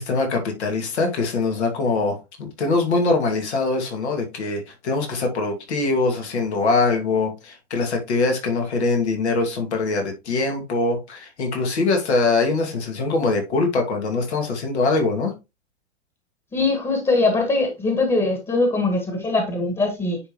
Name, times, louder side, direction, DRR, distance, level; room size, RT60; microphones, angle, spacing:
voice 1, 0.0-15.3, left 3 dB, 70° left, 2.4 m, -23 dB
voice 2, 16.5-20.2, left 3 dB, 15° left, 1.7 m, -21 dB
9.8 x 3.6 x 3.1 m
hypercardioid pair, 105°, 34 cm